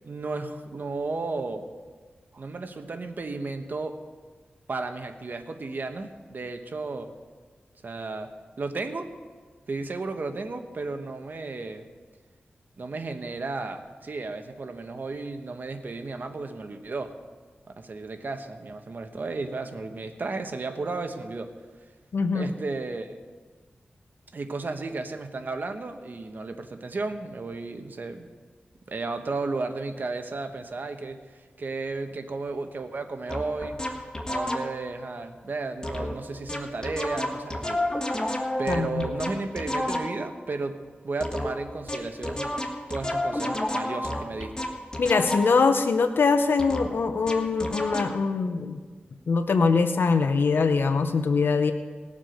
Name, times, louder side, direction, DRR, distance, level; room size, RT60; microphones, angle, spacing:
voice 1, 0.0-1.6 2.3-4.0 4.7-7.1 7.8-8.3 8.6-9.1 9.7-11.8 12.8-17.2 17.8-21.5 22.3-23.2 24.3-28.3 28.9-33.8 34.3-37.8 38.6-40.7 41.0-42.5 42.9-44.5, right 3 dB, 60° right, 6 dB, 1.2 m, -33 dB
voice 2, 22.1-22.5 38.7-39.0 45.0-48.8 49.3-51.7, left 4 dB, 80° left, 9 dB, 0.7 m, -23 dB
sound 1, 33.3-34.9 35.8-36.2 36.5-40.4 41.2-45.7 46.6-48.2, left 1 dB, 20° left, 1.4 m, -31 dB
19.5 x 7.3 x 5.2 m, 1.4 s
wide cardioid pair, 70°, 4 cm